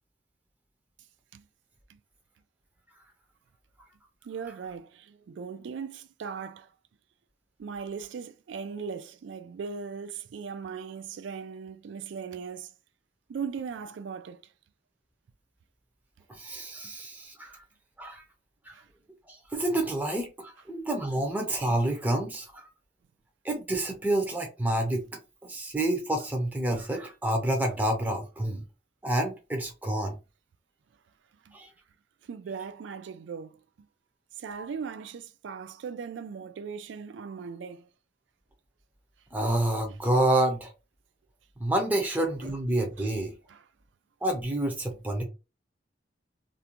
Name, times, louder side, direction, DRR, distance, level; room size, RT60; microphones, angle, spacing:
voice 1, 4.2-6.7 7.6-12.7 13.3-14.4 18.7-18.9 31.5-31.6 32.2-33.6 34.4-37.9 43.0-43.1 43.5-43.6, right 6 dB, 85° right, 0.3 m, -38 dB
voice 2, 16.3-17.6 18.0-18.2 18.7-18.8 19.3-22.7 23.4-25.0 25.4-28.6 29.0-30.2 31.5-31.7 39.3-40.7 41.6-43.3 44.2-45.2, right 1 dB, 10° right, 0.5 m, -28 dB
2.5 x 2.1 x 2.9 m
head